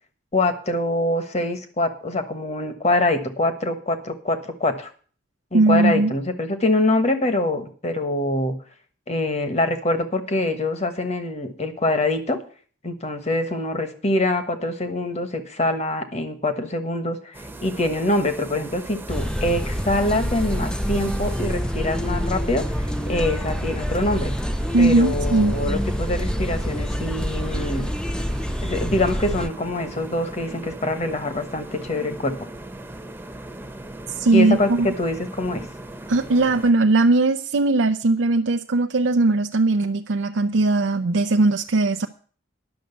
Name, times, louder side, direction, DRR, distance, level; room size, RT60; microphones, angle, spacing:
voice 1, 0.3-4.9 5.5-8.6 9.1-12.4 12.8-24.3 24.8-27.9 28.6-32.4 34.3-35.7, left 2 dB, 35° left, 8 dB, 1.3 m, -24 dB
voice 2, 5.5-6.1 24.7-25.6 34.1-34.9 36.1-42.1, right 2 dB, 80° right, 6 dB, 0.6 m, -19 dB
sound 1, 17.3-36.7, right 1 dB, 10° right, 0.9 m, -38 dB
sound 2, 19.1-29.5, equal, 5° left, 0.4 m, -27 dB
10.5 x 6.4 x 8.0 m, 0.43 s
head